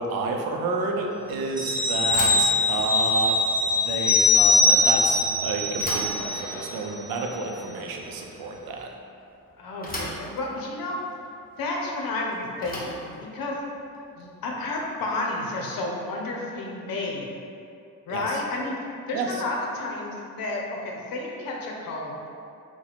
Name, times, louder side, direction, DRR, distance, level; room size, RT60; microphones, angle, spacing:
voice 1, 0.0-3.4 3.8-8.9 18.1-18.2 19.1-19.3, right 3 dB, 70° right, 2 dB, 0.5 m, -30 dB
sound 1, 1.6-6.7 7.0-7.2, left 2 dB, 10° right, 0.6 m, -22 dB
Bicycle / Thump thud, 2.0-15.1, left 1 dB, 25° left, 0.8 m, -40 dB
voice 2, 9.6-11.0 11.6-13.6 14.2-17.3 18.1-18.8 19.1-22.2, left 2 dB, 65° left, -1 dB, 0.7 m, -31 dB
2.8 x 2.2 x 4.0 m, 2.5 s
hypercardioid pair, 50°, 38 cm